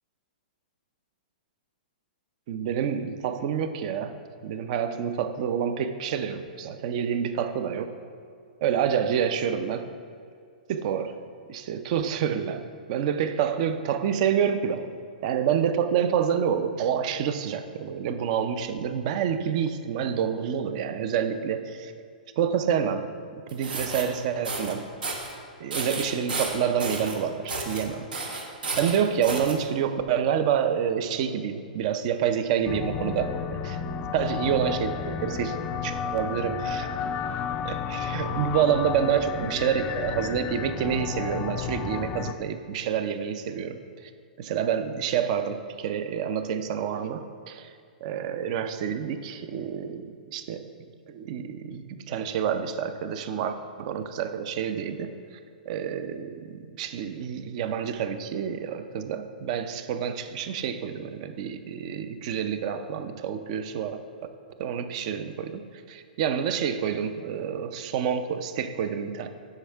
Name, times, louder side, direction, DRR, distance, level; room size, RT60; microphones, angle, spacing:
voice 1, 2.5-4.2 4.4-8.0 8.6-9.9 10.7-11.2 11.5-14.8 15.2-21.9 22.4-23.1 23.5-24.9 25.6-28.1 28.8-33.8 34.1-35.6 35.8-36.9 37.6-43.8 44.4-47.7 48.0-50.7 51.1-55.2 55.7-64.0 64.6-69.3, right 8 dB, 45° right, 10 dB, 0.5 m, -28 dB
sound 1, 23.5-24.0 24.4-24.7 25.0-25.3 25.7-27.2 27.5-27.8 28.1-29.5, right 3 dB, 80° right, 1.1 m, -32 dB
sound 2, 32.7-42.3, left 7 dB, 25° left, 0.3 m, -32 dB
8.0 x 5.6 x 3.4 m, 2.3 s
hypercardioid pair, 130°, 5 cm